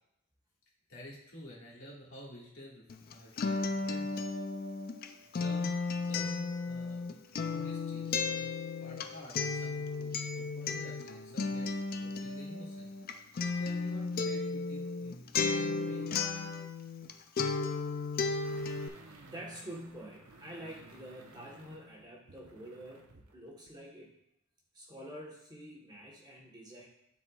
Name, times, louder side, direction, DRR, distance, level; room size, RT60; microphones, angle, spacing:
voice 1, 0.9-2.9 3.1-4.2 5.3-5.8 6.1-7.2 7.5-11.7 12.0-12.9 13.5-16.1, equal, 65° left, -5 dB, 1.8 m, -50 dB
Acoustic guitar, 2.9-17.1 17.4-18.9, left 4 dB, 45° left, 0.4 m, -34 dB
sound 1, 18.4-23.3 23.7-23.8, right 2 dB, 90° right, 0.9 m, -56 dB
voice 2, 19.3-23.0 23.3-24.1 24.7-26.9, right 1 dB, 20° right, -3 dB, 1.1 m, -47 dB
10.5 x 4.2 x 2.3 m, 0.79 s
head